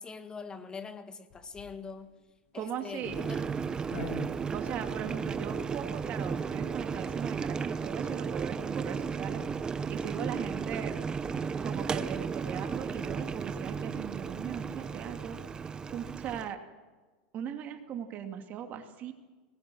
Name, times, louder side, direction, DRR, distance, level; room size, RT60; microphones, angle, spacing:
voice 1, 0.0-2.1 2.5-3.5, left 5 dB, 15° left, 10 dB, 1.6 m, -43 dB
sound 1, 1.3-16.2, left 5 dB, 50° left, 4.7 m, -53 dB
voice 2, 2.5-3.2 4.5-9.4 9.9-10.9 11.6-15.4 15.9-16.6 17.3-19.1, right 8 dB, 35° right, 6 dB, 2.6 m, -39 dB
Boiling, 3.0-16.5, right 6 dB, 15° right, 0.8 m, -34 dB
24.5 x 20.0 x 6.3 m, 1.3 s
supercardioid pair, 150°, 5 cm